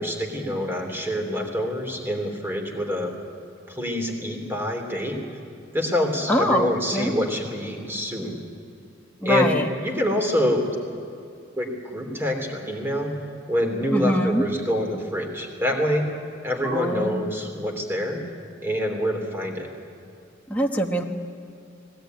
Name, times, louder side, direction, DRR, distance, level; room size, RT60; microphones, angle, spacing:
voice 1, 0.0-3.1 3.7-5.2 5.7-8.4 9.2-9.5 9.8-10.6 11.6-13.1 13.5-16.1 16.4-18.2 18.6-19.7, equal, 15° right, 2 dB, 3.2 m, -26 dB
voice 2, 6.3-6.7 6.9-7.1 9.2-9.7 13.9-14.4 16.6-17.3 20.5-21.0, equal, 10° left, 0 dB, 1.2 m, -23 dB
20.5 x 17.5 x 9.2 m, 2.6 s
head